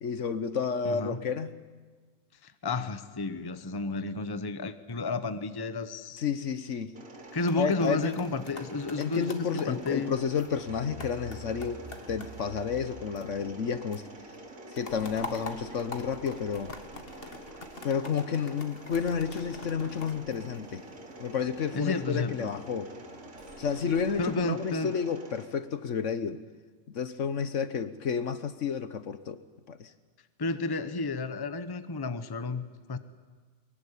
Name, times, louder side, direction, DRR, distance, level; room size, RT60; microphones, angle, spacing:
voice 1, 0.0-1.5 6.2-6.9 7.6-8.2 9.0-14.1 14.7-16.7 17.8-20.8 21.2-22.9 23.6-26.4 26.9-29.4 29.7-29.9, left 6 dB, 60° left, 12 dB, 1.2 m, -31 dB
voice 2, 0.8-1.2 2.4-6.2 7.3-10.2 21.7-22.5 24.2-24.9 30.4-33.0, left 3 dB, 20° left, 11 dB, 0.8 m, -32 dB
Mechanisms, 6.9-25.5, right 1 dB, 65° right, 3.1 m, -47 dB
sound 1, 7.2-13.7 13.9-21.1 21.6-21.9, left 3 dB, 40° left, 2.0 m, -46 dB
sound 2, 10.3-13.8 14.9-18.0 18.9-24.5, right 2 dB, 25° right, 6.2 m, -51 dB
22.5 x 21.5 x 9.9 m, 1.4 s
omnidirectional pair, 1.5 m